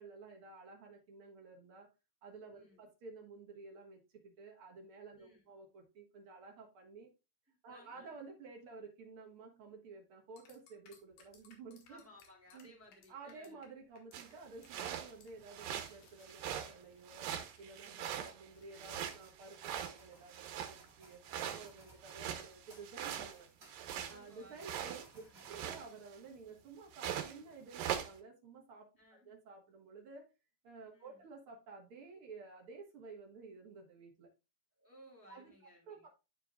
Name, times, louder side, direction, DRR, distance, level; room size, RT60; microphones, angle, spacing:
voice 1, 0.0-1.9 2.2-7.1 7.6-12.0 12.5-12.7 13.1-17.3 17.6-23.5 24.1-25.2 25.5-28.9 29.3-30.2 30.6-34.3 35.3-35.5 35.9-36.1, right 4 dB, 50° right, 1 dB, 1.8 m, -53 dB
voice 2, 2.5-2.9 5.1-5.5 7.5-8.2 11.9-13.7 17.8-18.1 24.0-25.5 29.0-29.3 30.9-31.2 34.8-36.1, left 1 dB, 5° right, -1 dB, 1.4 m, -61 dB
sound 1, 10.4-13.7 14.0-14.3 14.6-14.7 15.0-19.0, left 6 dB, 85° left, 3.3 m, -66 dB
sound 2, 11.0-12.8 13.1-14.1 14.5-16.6 16.9-24.1 24.5-25.7, right 2 dB, 30° right, 2.2 m, -65 dB
sound 3, 14.1-14.3 14.6-15.1 15.4-16.0 16.2-16.7 17.1-18.4 18.7-20.9 21.2-24.2 24.6-25.1 25.4-26.2 26.9-27.4 27.7-28.1, right 10 dB, 80° right, 2.6 m, -42 dB
12.5 x 4.6 x 2.3 m, 0.27 s
omnidirectional pair, 3.9 m